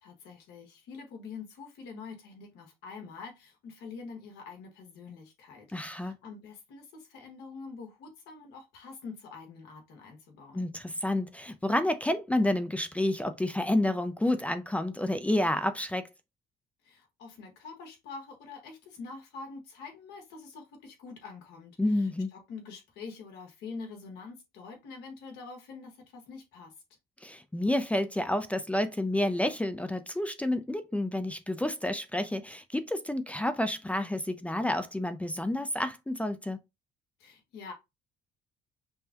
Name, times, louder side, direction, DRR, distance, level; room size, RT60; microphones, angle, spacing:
voice 1, 0.0-10.7 16.8-26.7 37.2-37.7, left 4 dB, 85° left, 1.6 m, -45 dB
voice 2, 5.7-6.1 10.5-16.1 21.8-22.3 27.2-36.6, left 1 dB, 10° left, 0.4 m, -29 dB
5.5 x 2.2 x 2.8 m
cardioid pair, 110°, 17 cm